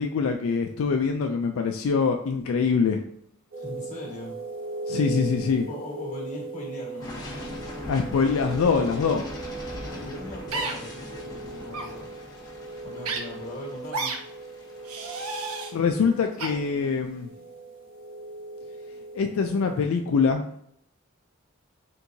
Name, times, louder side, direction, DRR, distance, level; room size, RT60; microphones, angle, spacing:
voice 1, 0.0-3.0 4.9-5.7 7.9-9.3 15.7-17.3 19.1-20.4, left 5 dB, 70° left, 4 dB, 0.3 m, -24 dB
sound 1, 3.5-19.8, right 3 dB, 65° right, 1.5 m, -39 dB
voice 2, 3.6-4.3 5.7-7.6 9.9-12.1 12.8-14.1, left 1 dB, 35° left, -3 dB, 1.4 m, -39 dB
sound 2, 7.0-16.8, left 1 dB, 15° left, 0.9 m, -41 dB
sound 3, 10.5-10.7 11.7-11.9 13.0-13.2 13.9-14.2 14.8-15.7 16.4-16.5, right 3 dB, 80° right, 0.7 m, -31 dB
4.4 x 3.5 x 2.7 m, 0.68 s
head